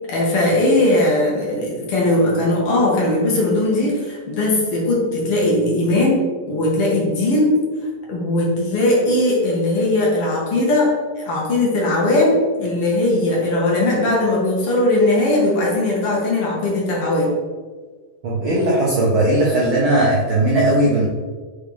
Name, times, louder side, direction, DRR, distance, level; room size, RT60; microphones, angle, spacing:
voice 1, 0.1-7.6 8.1-10.9 11.2-17.3, left 1 dB, 50° left, -4 dB, 2.0 m, -19 dB
voice 2, 18.2-21.1, right 1 dB, 90° right, -5 dB, 1.1 m, -17 dB
6.0 x 5.4 x 3.4 m, 1.4 s
omnidirectional pair, 3.9 m